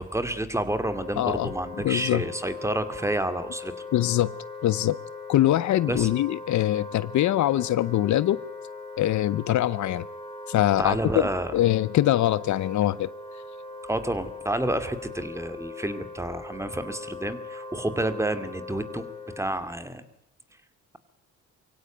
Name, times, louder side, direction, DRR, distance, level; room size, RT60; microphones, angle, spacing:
voice 1, 0.0-3.7 5.9-6.1 10.8-11.5 13.9-19.1 19.4-20.0, right 1 dB, 10° right, 2.3 m, -29 dB
Wind instrument woodwind instrument, 0.8-19.4, left 3 dB, 15° left, 7.1 m, -40 dB
voice 2, 1.2-1.5 1.8-2.2 3.9-4.3 4.6-5.0 5.3-8.4 9.0-10.0 10.5-11.0 11.5-13.1, left 13 dB, 70° left, 0.8 m, -23 dB
23.5 x 16.5 x 9.1 m
cardioid pair, 90°, 30 cm